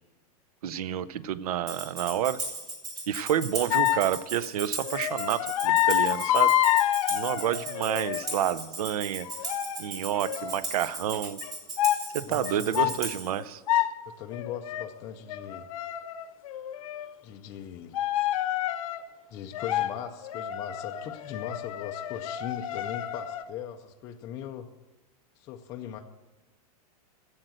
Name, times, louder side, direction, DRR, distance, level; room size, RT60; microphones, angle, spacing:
voice 1, 0.6-2.4 3.1-6.5 7.1-9.3 9.8-11.4 12.1-13.6, right 10 dB, 70° right, 17 dB, 0.6 m, -29 dB
Tambourine, 1.7-13.4, right 3 dB, 20° right, 1.7 m, -37 dB
sound 1, 3.7-4.1 4.8-8.5 9.2-9.9 10.2-10.7 11.4-11.5 11.8-12.0 12.4-13.0 13.4-14.0 14.3-14.9 15.3-17.1 17.9-19.0 19.5-19.9 20.2-23.4, left 12 dB, 60° left, 0.7 m, -28 dB
voice 2, 12.2-13.0 14.1-15.7 17.2-18.0 19.3-24.7 25.4-26.0, left 9 dB, 15° left, 2 dB, 0.4 m, -39 dB
13.0 x 7.9 x 7.5 m, 1.1 s
supercardioid pair, 180°, 20 cm